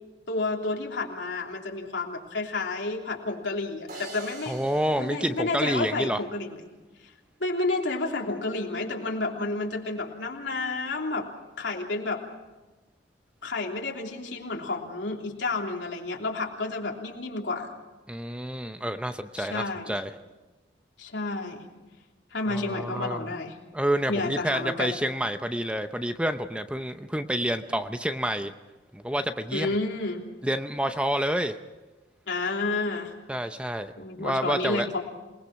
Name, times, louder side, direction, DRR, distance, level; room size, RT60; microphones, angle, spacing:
voice 1, 0.3-4.6 5.0-6.6 7.0-7.1 7.4-11.3 11.6-12.2 13.4-17.7 19.4-19.9 21.0-21.7 22.3-23.6 24.1-25.0 29.5-30.2 32.3-33.1 34.0-35.1, left 3 dB, 75° left, 0 dB, 3.2 m, -30 dB
sound 1, 3.9-6.2, right 2 dB, 50° right, 3.6 m, -45 dB
voice 2, 4.5-6.2 18.1-20.1 22.5-23.3 23.7-28.5 28.9-29.7 30.4-31.6 33.3-33.9 34.2-34.9, right 1 dB, 5° right, 8 dB, 0.7 m, -28 dB
27.5 x 20.0 x 5.9 m, 1.2 s
head